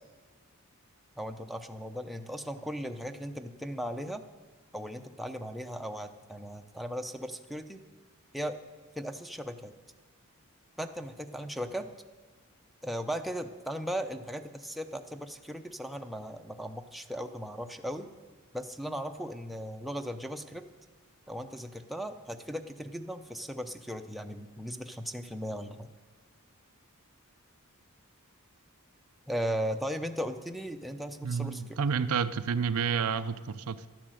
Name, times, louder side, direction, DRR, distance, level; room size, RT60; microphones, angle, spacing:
voice 1, 1.2-4.2 4.7-7.8 8.3-8.6 9.0-9.8 10.8-11.9 12.8-18.1 18.5-20.6 21.3-25.9 29.3-31.8, equal, ahead, 5 dB, 0.7 m, -37 dB
voice 2, 31.2-33.9, right 6 dB, 85° right, 12 dB, 0.6 m, -30 dB
12.0 x 10.5 x 7.8 m, 1.4 s
head